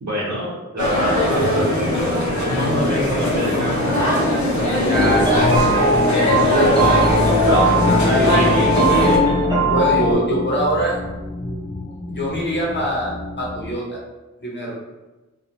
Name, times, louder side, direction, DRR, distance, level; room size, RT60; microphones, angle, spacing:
voice 1, 0.0-1.9 2.2-4.2 8.1-9.2, equal, 70° right, -6 dB, 1.0 m, -27 dB
sound 1, 0.8-9.2, left 1 dB, 75° left, 0.7 m, -20 dB
sound 2, 2.2-13.8, left 2 dB, 25° left, 0.4 m, -29 dB
voice 2, 4.8-5.3 7.9-8.3 9.7-11.0 12.1-14.0 14.4-14.8, right 1 dB, 40° left, -4 dB, 0.8 m, -23 dB
sound 3, 4.9-10.1, equal, 15° right, 0.6 m, -18 dB
2.3 x 2.2 x 2.9 m, 1.1 s
wide cardioid pair, 55°, 29 cm